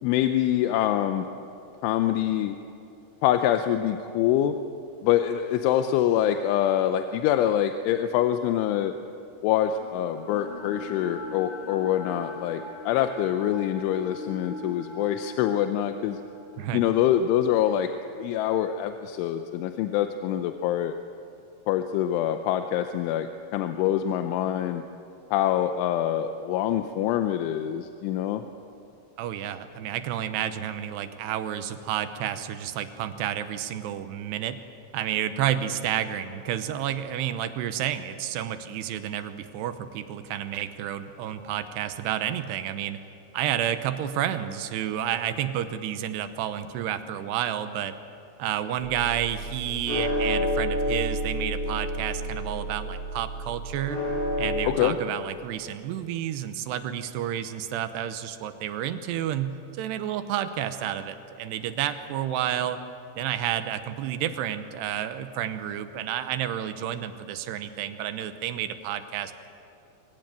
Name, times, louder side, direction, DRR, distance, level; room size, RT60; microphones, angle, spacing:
voice 1, 0.0-1.3 1.8-2.6 3.2-4.5 5.0-8.9 9.4-16.2 16.7-17.9 18.2-21.0 21.7-24.8 25.3-28.4 54.6-55.0, left 11 dB, 90° left, 7 dB, 3.2 m, -25 dB
sound 1, 9.7-19.9, left 1 dB, 40° right, 6.2 m, -42 dB
voice 2, 29.2-34.6 34.9-43.0 43.3-47.9 48.4-54.0 54.4-62.8 63.2-69.3, right 10 dB, 75° right, 10 dB, 2.8 m, -30 dB
sound 2, 48.8-54.7, equal, 65° left, 8.7 m, -29 dB
24.5 x 16.5 x 9.2 m, 2.7 s
omnidirectional pair, 5.4 m